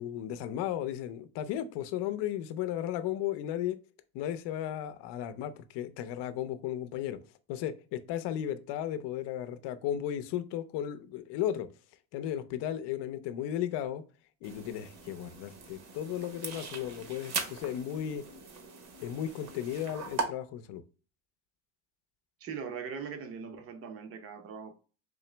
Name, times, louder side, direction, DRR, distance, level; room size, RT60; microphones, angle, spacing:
voice 1, 0.0-3.8 4.1-7.2 7.5-11.7 12.1-14.0 14.4-18.3 19.0-20.8, left 11 dB, 65° left, 0.6 m, -35 dB
sound 1, 14.4-20.2, right 5 dB, 60° right, 1.0 m, -40 dB
voice 2, 22.4-24.7, right 6 dB, 30° right, 0.6 m, -40 dB
3.8 x 2.9 x 3.2 m
cardioid pair, 140°, 44 cm